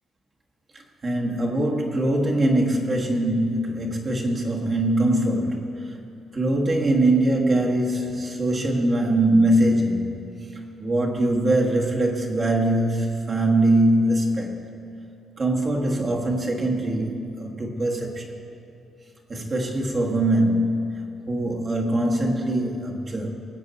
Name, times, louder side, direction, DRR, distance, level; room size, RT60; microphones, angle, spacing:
voice 1, 0.7-6.0 6.3-10.2 10.8-14.6 15.4-18.3 19.3-23.3, right 1 dB, 35° right, 1.5 m, -22 dB
19.0 x 7.8 x 4.1 m
cardioid pair, 90°, 0 cm